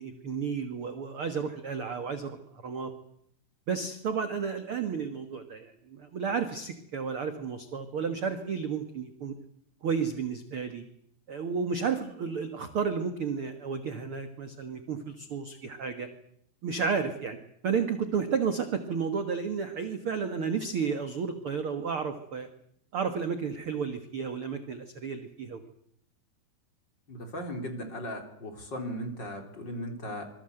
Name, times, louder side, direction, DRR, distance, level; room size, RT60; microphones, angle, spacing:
voice 1, 0.0-2.4 2.6-2.9 3.7-9.3 9.8-10.8 11.3-16.1 16.6-17.4 17.6-22.5 22.9-25.6, right 6 dB, 55° right, 8 dB, 1.5 m, -32 dB
voice 2, 27.1-30.2, equal, 30° left, 5 dB, 3.6 m, -37 dB
26.0 x 22.0 x 7.9 m, 0.71 s
omnidirectional pair, 4.5 m